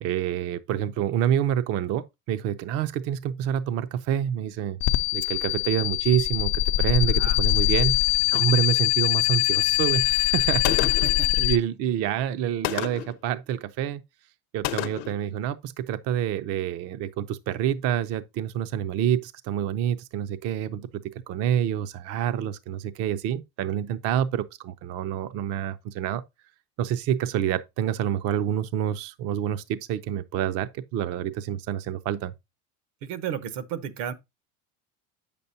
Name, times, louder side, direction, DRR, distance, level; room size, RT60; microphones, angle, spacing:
voice 1, 0.0-4.8 5.1-8.0 8.3-10.6 11.4-14.0 14.5-26.2 26.8-32.3, right 10 dB, 45° right, 0.5 m, -27 dB
sound 1, 4.8-11.6, left 19 dB, 50° left, 0.5 m, -23 dB
Gunshot gunfire, 10.6-11.2 12.6-13.2 14.6-15.2, left 16 dB, 75° left, 0.8 m, -30 dB
voice 2, 10.7-11.4 33.0-34.1, right 8 dB, 75° right, 1.0 m, -33 dB
8.5 x 6.8 x 2.7 m
cardioid pair, 145°, 37 cm